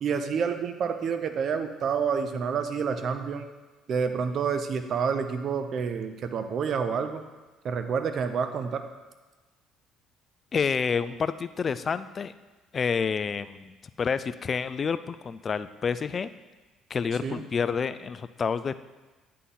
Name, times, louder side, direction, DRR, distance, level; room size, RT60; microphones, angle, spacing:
voice 1, 0.0-3.5 3.9-7.2 7.6-8.8 17.2-17.4, right 6 dB, 55° right, 9 dB, 0.6 m, -28 dB
voice 2, 10.5-12.3 12.7-16.3 16.9-18.7, left 6 dB, 40° left, 13 dB, 0.3 m, -29 dB
9.4 x 4.2 x 3.8 m, 1.2 s
supercardioid pair, 75°, 0 cm